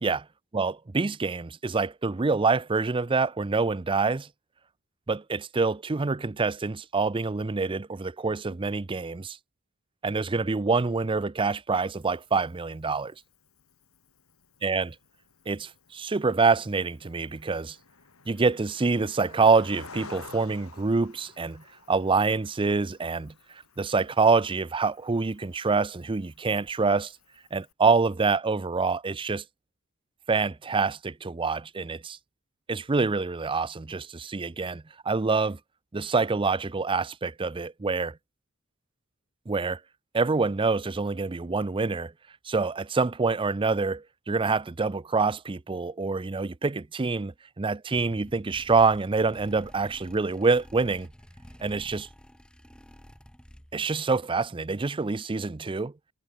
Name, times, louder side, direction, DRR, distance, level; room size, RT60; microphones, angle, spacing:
voice 1, 0.5-4.3 5.1-9.4 10.0-13.1 14.6-14.9 15.5-17.8 18.3-23.3 23.8-27.1 27.5-29.4 30.3-32.2 32.7-35.6 35.9-38.2 39.5-39.8 40.1-42.1 42.5-51.1 51.6-52.1 53.7-55.9, right 4 dB, 25° right, 0.5 m, -26 dB
Cricket, 11.7-27.7, left 4 dB, 90° left, 5.4 m, -53 dB
sound 1, 47.9-54.0, equal, 5° left, 1.9 m, -50 dB
head